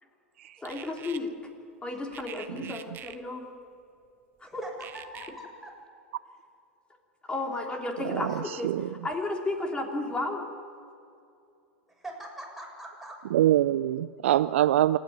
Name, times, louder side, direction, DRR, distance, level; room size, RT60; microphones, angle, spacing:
voice 1, 0.6-1.3 1.8-3.4 4.4-4.6 7.3-8.7 9.0-10.5, left 2 dB, 15° left, 1 dB, 3.7 m, -33 dB
sound 1, 0.6-1.2 2.1-3.2 4.8-5.3, right 10 dB, 30° right, 1.3 m, -44 dB
voice 2, 4.4-5.7 8.3-8.5 12.0-13.1, right 1 dB, ahead, -2 dB, 7.2 m, -43 dB
voice 3, 13.3-15.0, right 13 dB, 70° right, 15 dB, 0.4 m, -23 dB
27.0 x 10.0 x 9.7 m, 2.5 s
hypercardioid pair, 95°, 7 cm